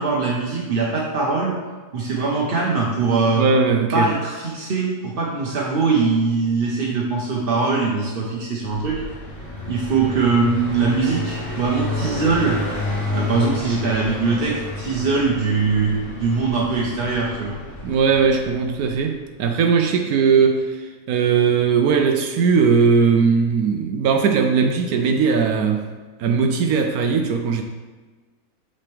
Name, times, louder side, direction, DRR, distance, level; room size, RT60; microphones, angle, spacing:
voice 1, 0.0-1.5 1.9-3.4 3.9-9.0 9.7-12.6 13.1-17.6, right 4 dB, 45° right, -3 dB, 0.8 m, -21 dB
voice 2, 3.3-4.1 17.8-25.8 26.2-27.6, right 5 dB, 75° right, 5 dB, 1.0 m, -19 dB
Car passing by, 8.6-19.2, left 1 dB, 55° left, 1.6 m, -31 dB
7.5 x 4.3 x 3.4 m, 1.3 s
omnidirectional pair, 1.6 m